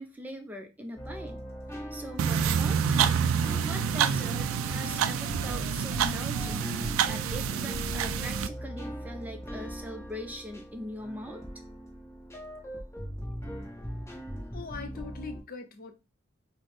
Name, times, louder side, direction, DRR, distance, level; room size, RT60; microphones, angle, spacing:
voice 1, 0.0-1.4 1.7-3.2 3.6-11.4, right 1 dB, 10° right, 0.4 m, -41 dB
sound 1, 1.0-15.4, equal, 15° left, 0.9 m, -40 dB
sound 2, 2.2-8.5, right 7 dB, 85° right, 0.3 m, -28 dB
sound 3, 4.3-9.1, right 2 dB, 60° right, 0.7 m, -53 dB
voice 2, 14.5-15.9, left 4 dB, 45° left, 0.5 m, -41 dB
4.1 x 2.0 x 3.2 m
head